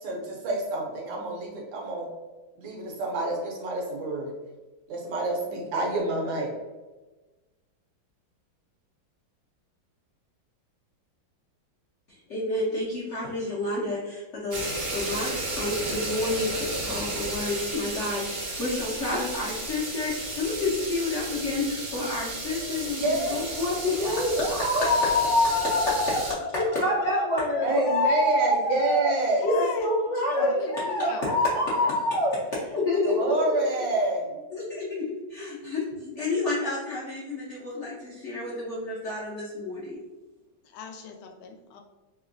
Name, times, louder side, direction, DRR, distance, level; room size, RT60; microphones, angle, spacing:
voice 1, 0.0-2.1 2.6-4.3 4.9-6.5 22.5-23.5 24.1-24.9 27.6-29.5 30.3-30.5 31.5-31.6 33.0-34.4, right 2 dB, 75° right, 0 dB, 1.4 m, -28 dB
voice 2, 12.3-26.2 26.5-29.1 29.4-32.4 32.7-33.5 34.5-40.0, left 2 dB, 60° left, -7 dB, 0.7 m, -28 dB
sound 1, 14.5-26.3, right 2 dB, 50° right, 0.7 m, -33 dB
voice 3, 25.0-28.3 29.4-29.9 30.3-31.3 40.6-41.8, left 6 dB, 90° left, 4 dB, 1.4 m, -35 dB
3.5 x 2.9 x 2.5 m, 1.2 s
omnidirectional pair, 2.1 m